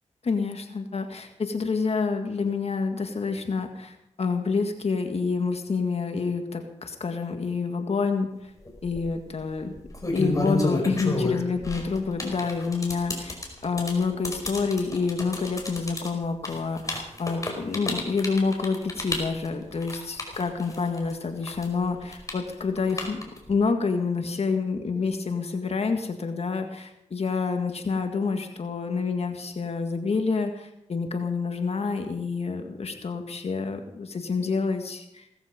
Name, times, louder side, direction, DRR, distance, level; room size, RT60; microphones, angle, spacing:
voice 1, 0.2-8.5 8.8-9.8 10.1-23.2 23.5-35.3, left 4 dB, 60° left, 5 dB, 2.0 m, -28 dB
sound 1, 8.7-9.0 9.8-21.1 21.4-23.5, left 2 dB, 30° left, 5.1 m, -30 dB
18.0 x 14.5 x 5.2 m, 0.83 s
cardioid pair, 60°, 12 cm